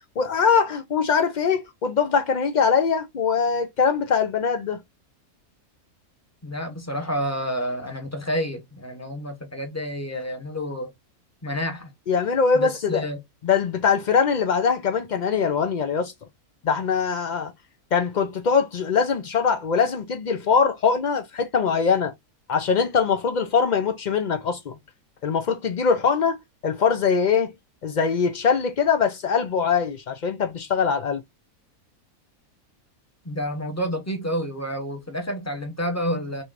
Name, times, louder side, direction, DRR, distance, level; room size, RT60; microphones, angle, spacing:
voice 1, 0.2-4.8 12.1-13.0 13.4-16.1 16.6-17.5 17.9-22.1 22.5-24.8 25.2-26.4 26.6-27.5 27.8-31.2, left 6 dB, 75° left, 0.4 m, -22 dB
voice 2, 6.4-10.9 11.4-11.9 12.5-13.2 33.2-36.4, equal, 10° left, 1.2 m, -29 dB
6.2 x 3.1 x 2.5 m
omnidirectional pair, 1.5 m